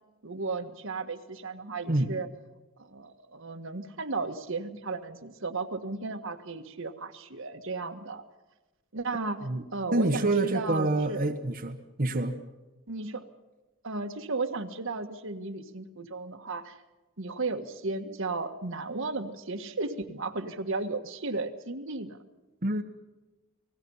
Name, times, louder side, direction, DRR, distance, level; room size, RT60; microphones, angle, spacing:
voice 1, 0.2-2.3 2.8-8.2 8.9-11.2 12.1-12.3 12.9-13.3 13.8-16.8 17.2-22.2, right 3 dB, 65° right, 6 dB, 1.7 m, -34 dB
voice 2, 9.9-12.3 22.6-22.8, right 2 dB, 45° right, 3 dB, 1.3 m, -27 dB
29.5 x 19.5 x 5.6 m, 1.1 s
head